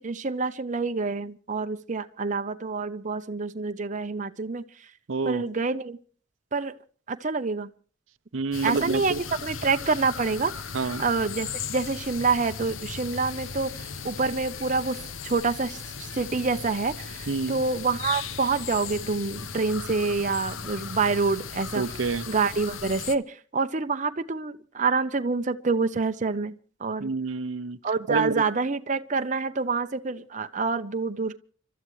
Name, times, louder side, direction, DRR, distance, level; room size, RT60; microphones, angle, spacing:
voice 1, 0.0-4.6 5.2-6.0 6.5-6.8 7.1-7.7 8.6-10.5 10.8-15.0 15.2-21.8 22.3-27.1 27.8-31.4, right 4 dB, 40° right, 0.7 m, -27 dB
voice 2, 5.1-5.4 8.3-9.2 10.7-11.0 17.3-17.6 21.8-22.2 27.0-27.8 28.1-28.4, right 4 dB, 80° right, 0.7 m, -28 dB
sound 1, 8.5-23.2, left 6 dB, 85° left, 1.0 m, -37 dB
30.0 x 13.0 x 3.2 m
head